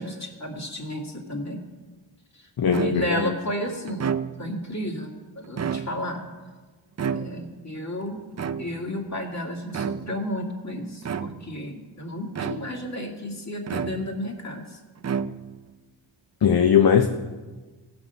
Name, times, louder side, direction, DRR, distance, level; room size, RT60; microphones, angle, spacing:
voice 1, 0.0-1.6 2.7-6.2 7.1-8.2 8.6-14.6, left 1 dB, 35° left, 1 dB, 2.2 m, -32 dB
voice 2, 2.6-3.3 16.4-17.1, left 7 dB, 50° left, 6 dB, 0.7 m, -19 dB
sound 1, 2.7-3.3 3.9-4.6 5.4-6.2 7.0-7.7 8.4-9.0 9.7-10.3 11.0-11.6 12.3-12.9 13.7-14.4 15.0-15.7, right 7 dB, 35° right, 0.5 m, -31 dB
16.5 x 6.2 x 5.6 m, 1.3 s
cardioid pair, 70°, 47 cm